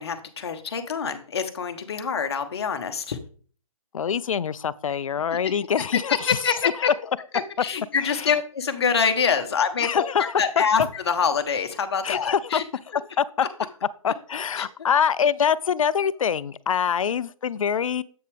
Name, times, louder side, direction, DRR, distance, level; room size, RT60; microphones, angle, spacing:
voice 1, 0.0-3.2 5.4-5.5 5.9-6.9 7.6-12.6 14.6-14.7, left 6 dB, 50° left, 1.0 m, -25 dB
voice 2, 3.9-6.4 6.6-6.7 8.0-8.3 9.8-10.6 12.0-12.6 13.2-13.5 14.0-18.0, left 7 dB, 70° left, 0.4 m, -24 dB
7.9 x 6.6 x 3.3 m
hypercardioid pair, 165°, 18 cm